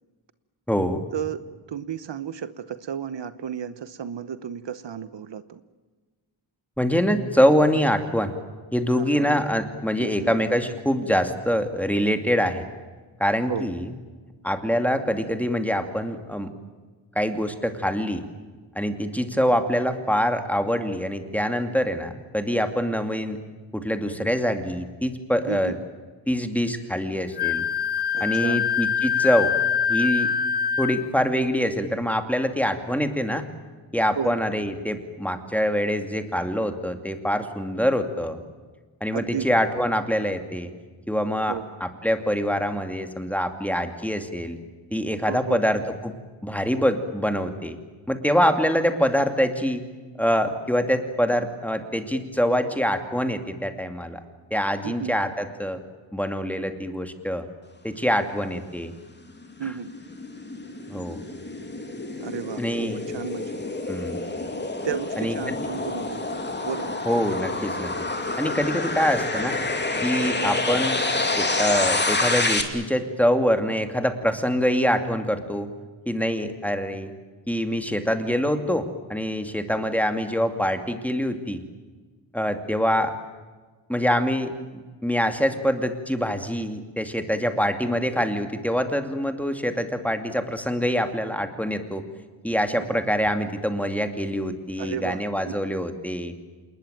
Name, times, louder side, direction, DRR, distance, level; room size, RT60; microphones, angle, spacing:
voice 1, 0.7-1.0 6.8-8.3 8.7-12.6 13.2-13.9 14.4-16.5 17.2-18.2 18.8-23.4 23.7-25.7 26.3-27.7 28.2-29.5 29.9-30.3 30.8-33.4 33.9-38.4 39.0-40.7 41.1-44.6 44.9-46.1 46.4-47.8 48.1-49.8 50.2-54.2 54.5-55.8 56.1-57.5 57.8-58.9 60.9-61.2 62.6-63.0 63.9-64.2 65.2-65.7 67.1-67.9 68.4-69.6 70.0-71.0 71.4-75.7 76.1-77.1 77.5-81.6 82.3-83.1 83.9-84.5 85.0-92.0 92.4-96.3, equal, 5° left, 7 dB, 2.4 m, -25 dB
voice 2, 1.7-5.6 9.0-9.4 10.0-10.3 13.5-13.7 25.5-25.8 28.1-28.6 34.1-34.4 39.1-39.5 41.5-41.6 45.2-45.6 54.8-55.1 59.6-59.9 62.2-63.6 64.8-66.9 94.8-95.2 95.5-95.6, right 8 dB, 60° right, 14 dB, 1.1 m, -33 dB
Wind instrument woodwind instrument, 27.4-31.1, left 7 dB, 50° left, 1.9 m, -24 dB
sound 1, 59.4-72.6, left 2 dB, 20° left, 2.8 m, -28 dB
27.5 x 20.5 x 9.2 m, 1.4 s
wide cardioid pair, 145°, 48 cm